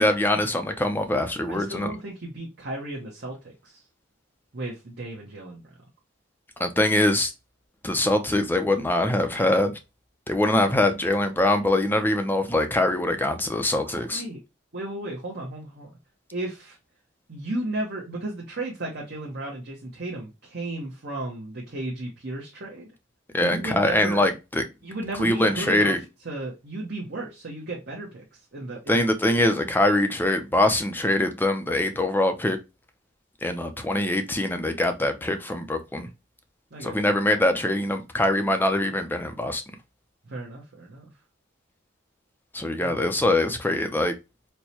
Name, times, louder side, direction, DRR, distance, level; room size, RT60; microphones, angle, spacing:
voice 1, 0.0-1.9 6.6-7.3 7.8-9.7 10.3-14.2 23.3-24.6 25.2-26.0 28.9-32.6 33.4-36.1 36.8-39.6 42.5-44.1, left 1 dB, 10° left, 0.5 m, -23 dB
voice 2, 1.5-3.8 4.5-5.6 13.8-14.4 14.7-15.9 16.3-16.8 17.3-22.9 23.4-24.3 24.8-25.9 26.2-29.1 36.7-37.0 40.3-41.1 42.8-42.9, right 2 dB, 55° right, 0.9 m, -34 dB
4.4 x 2.2 x 2.8 m
head